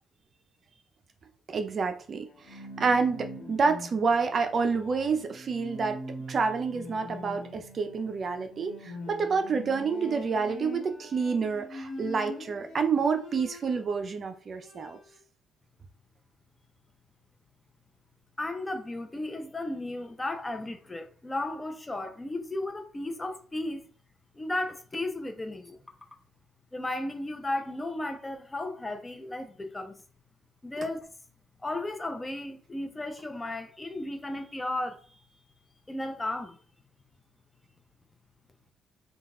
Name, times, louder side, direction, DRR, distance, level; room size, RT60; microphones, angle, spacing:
voice 1, 1.5-6.0 6.3-15.0, right 5 dB, 45° right, 0.5 m, -28 dB
Bowed string instrument, 2.3-14.1 14.4-15.2, left 1 dB, 65° left, 1.1 m, -43 dB
voice 2, 18.4-23.9 24.3-25.8 26.7-30.0 30.6-31.1 31.6-35.2 35.9-36.6, left 2 dB, 20° left, 0.7 m, -34 dB
3.9 x 2.4 x 3.6 m
cardioid pair, 90°, 0 cm